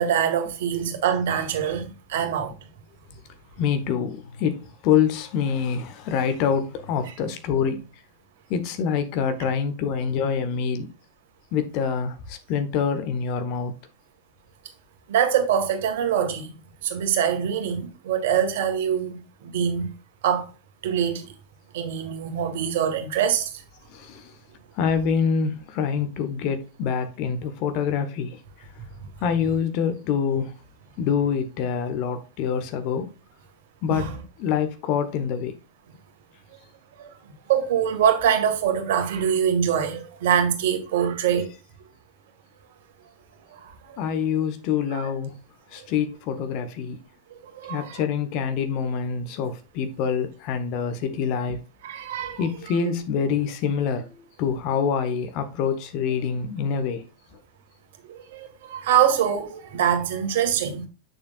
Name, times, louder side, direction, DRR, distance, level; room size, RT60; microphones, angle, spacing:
voice 1, 0.0-2.5 15.1-16.5 16.8-19.9 20.2-20.5 20.8-21.2 21.7-23.5 33.9-34.1 37.0-37.1 37.5-41.5 43.5-44.0 44.9-45.0 47.3-48.0 51.8-52.4 58.1-60.9, right 8 dB, 55° right, 1.8 m, -24 dB
voice 2, 3.6-7.8 8.5-10.9 11.5-13.7 23.9-24.3 24.7-28.7 29.2-30.5 31.0-33.1 33.8-34.1 34.4-35.5 44.0-45.4 45.7-47.0 47.7-51.6 52.4-57.0, left 7 dB, 40° left, 1.3 m, -26 dB
8.1 x 7.0 x 2.5 m
figure-of-eight pair, 90°, 0 cm